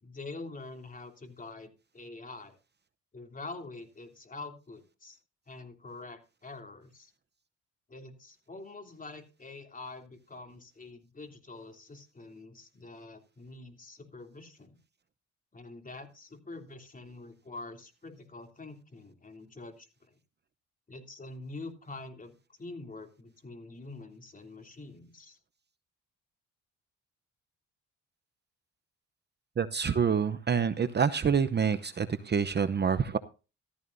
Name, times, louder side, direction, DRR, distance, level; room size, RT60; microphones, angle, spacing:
voice 1, 0.0-2.6 3.1-5.2 5.5-7.1 7.9-14.8 15.5-19.9 20.9-25.4, left 3 dB, 25° left, 5 dB, 3.2 m, -45 dB
voice 2, 29.6-33.2, right 6 dB, 35° right, 11 dB, 0.8 m, -27 dB
14.5 x 14.0 x 2.7 m, 0.32 s
cardioid pair, 90°, 30 cm